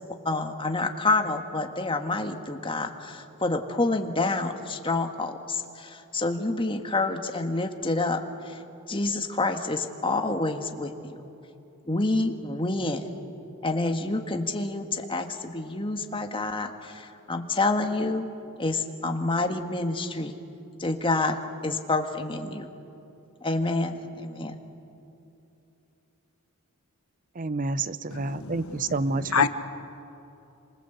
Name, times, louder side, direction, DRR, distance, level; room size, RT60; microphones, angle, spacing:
voice 1, 0.3-11.2 11.8-13.1 13.6-18.3 18.6-20.4 20.8-22.7 23.4-24.6, left 2 dB, 25° left, 5 dB, 1.7 m, -28 dB
voice 2, 27.4-29.5, right 3 dB, 40° right, 16 dB, 0.6 m, -29 dB
voice 3, 28.1-28.5 29.3-29.5, left 6 dB, 80° left, 10 dB, 1.3 m, -24 dB
28.0 x 26.0 x 8.1 m, 2.8 s
head